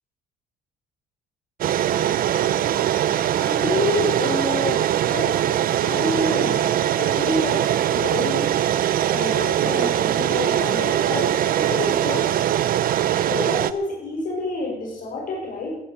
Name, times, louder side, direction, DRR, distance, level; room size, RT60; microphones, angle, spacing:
sound 1, 1.6-13.7, right 11 dB, 60° right, 0.8 m, -21 dB
voice 1, 2.0-12.4 13.2-15.8, left 2 dB, 55° left, 0 dB, 5.2 m, -29 dB
14.5 x 10.5 x 8.9 m, 0.91 s
cardioid pair, 110°, 17 cm